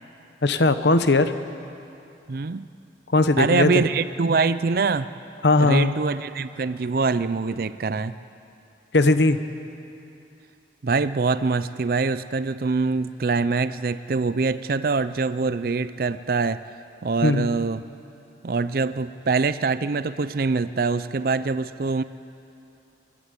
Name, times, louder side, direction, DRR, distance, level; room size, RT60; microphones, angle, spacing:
voice 1, 0.4-1.3 3.1-3.8 5.4-5.9 8.9-9.4 17.2-17.5, left 2 dB, 65° left, 10 dB, 0.9 m, -19 dB
voice 2, 2.3-2.7 3.4-5.1 5.6-8.1 10.8-16.6 17.0-17.8 18.4-22.0, right 4 dB, 50° right, 14 dB, 0.4 m, -24 dB
28.0 x 11.5 x 8.1 m, 2.7 s
head